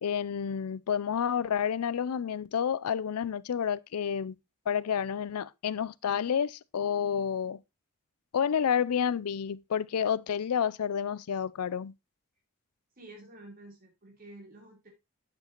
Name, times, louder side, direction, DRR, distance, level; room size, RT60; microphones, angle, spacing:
voice 1, 0.0-4.4 4.7-7.6 8.3-11.9, left 7 dB, 90° left, 0.4 m, -30 dB
voice 2, 13.0-14.9, right 1 dB, 40° right, 3.6 m, -50 dB
9.1 x 7.4 x 2.9 m
head